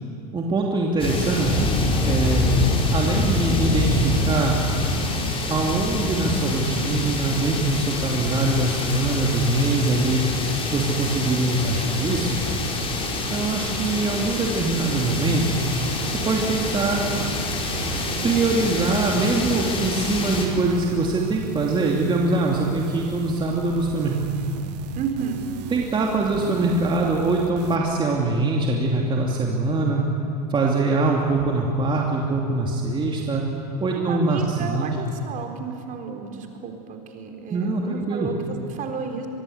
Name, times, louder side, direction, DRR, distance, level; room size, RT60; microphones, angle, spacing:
voice 1, 0.3-1.7 2.1-2.6 2.9-4.6 5.5-10.2 10.7-12.4 13.3-15.6 16.1-17.0 18.2-24.3 25.7-30.0 30.5-33.4 33.8-35.0 37.5-38.3, right 3 dB, 25° right, -1 dB, 2.8 m, -23 dB
sound 1, 1.0-20.5, left 2 dB, 25° left, 5.0 m, -26 dB
sound 2, 15.0-27.8, right 9 dB, 75° right, 1.5 m, -36 dB
voice 2, 25.0-25.4 34.0-39.3, right 6 dB, 40° right, 3 dB, 4.0 m, -32 dB
24.5 x 22.5 x 8.1 m, 2.6 s
hypercardioid pair, 110°, 21 cm